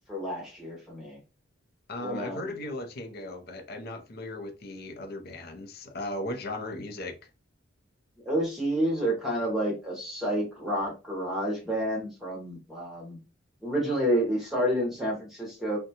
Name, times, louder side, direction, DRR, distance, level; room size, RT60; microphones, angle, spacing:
voice 1, 0.1-1.2 2.0-2.5 8.2-13.2 13.6-15.8, equal, ahead, 0.8 m, -29 dB
voice 2, 1.9-7.2, left 1 dB, 50° left, 0.5 m, -37 dB
2.6 x 2.1 x 2.8 m
head